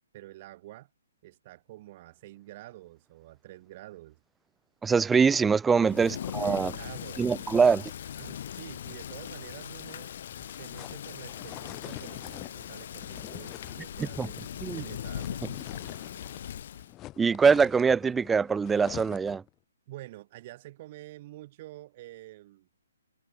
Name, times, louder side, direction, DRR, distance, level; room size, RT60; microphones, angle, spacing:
voice 1, 0.1-0.9 1.2-4.2 5.7-6.2 6.4-7.3 8.1-10.1 10.6-14.4 14.7-15.6 19.9-22.7, right 16 dB, 20° right, 6.8 m, -47 dB
voice 2, 4.8-6.7 7.2-7.9 14.2-14.3 14.6-14.8 17.2-19.4, right 5 dB, 5° right, 0.7 m, -23 dB
Thunder / Rain, 5.8-16.9, left 10 dB, 35° left, 3.7 m, -40 dB
sound 1, 10.2-16.5 16.8-19.5, left 15 dB, 10° left, 2.8 m, -46 dB
hypercardioid pair, 175°, 0 cm